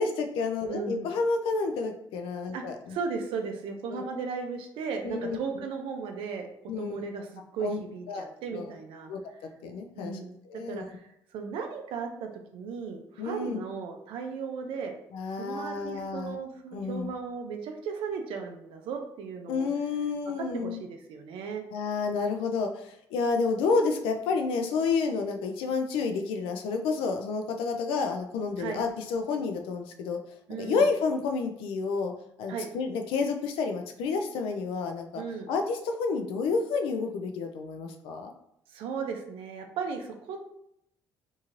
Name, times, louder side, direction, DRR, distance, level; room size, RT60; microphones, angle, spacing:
voice 1, 0.0-3.0 3.9-4.0 5.0-5.6 6.7-7.0 7.6-7.8 8.1-8.2 8.5-8.7 9.1-10.2 10.5-10.8 13.2-13.6 15.1-16.4 16.7-17.1 19.5-20.8 21.7-30.2 30.6-32.1 32.4-35.2 35.5-38.3, left 4 dB, 85° left, 5 dB, 0.4 m, -30 dB
voice 2, 0.7-1.1 2.5-2.6 2.9-6.5 6.8-9.1 10.0-10.3 10.7-11.1 11.3-15.0 15.4-19.7 20.5-21.6 28.6-28.8 30.5-30.9 32.5-32.7 35.2-35.5 38.7-40.5, right 5 dB, 75° right, 4 dB, 0.4 m, -36 dB
3.0 x 2.7 x 2.4 m, 0.76 s
supercardioid pair, 75°, 9 cm